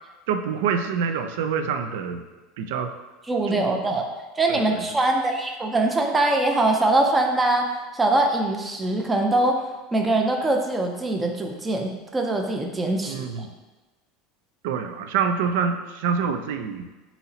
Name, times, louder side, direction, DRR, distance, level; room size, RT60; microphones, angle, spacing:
voice 1, 0.3-2.2 2.6-2.9 3.5-3.8 4.5-4.8 13.1-13.5 14.6-16.8, right 6 dB, 75° right, 7 dB, 0.4 m, -26 dB
voice 2, 3.3-4.0 4.4-7.7 7.9-9.6 9.9-13.5, right 2 dB, 10° right, 2 dB, 0.4 m, -22 dB
4.0 x 2.9 x 4.1 m, 1.2 s
supercardioid pair, 160°, 0 cm